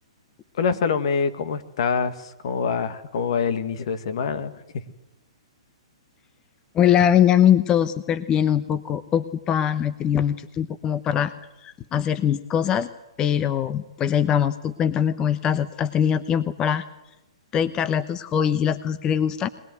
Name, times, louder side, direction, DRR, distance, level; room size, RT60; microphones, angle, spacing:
voice 1, 0.5-4.8, left 6 dB, 60° left, 11 dB, 2.0 m, -25 dB
voice 2, 6.7-11.3 11.6-12.9 13.2-16.8 17.5-19.5, left 9 dB, 20° left, 13 dB, 0.9 m, -22 dB
22.5 x 20.0 x 9.5 m, 0.94 s
hypercardioid pair, 135°, 3 cm